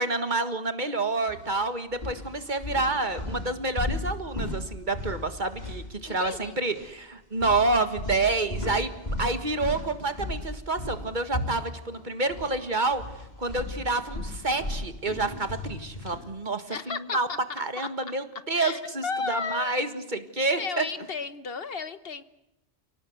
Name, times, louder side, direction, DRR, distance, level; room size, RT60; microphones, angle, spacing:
voice 1, 0.0-8.9 9.2-13.0 13.4-17.3 17.6-20.8, right 3 dB, 45° right, 9 dB, 1.9 m, -28 dB
sound 1, 1.3-1.5 1.9-6.4 6.7-6.9 7.4-12.5 12.8-16.3, left 1 dB, 40° left, 3.8 m, -35 dB
voice 2, 6.1-6.6 16.7-17.6 18.5-19.7 20.6-22.2, left 5 dB, 60° left, 13 dB, 1.3 m, -34 dB
29.5 x 18.5 x 8.0 m, 0.91 s
omnidirectional pair, 1.1 m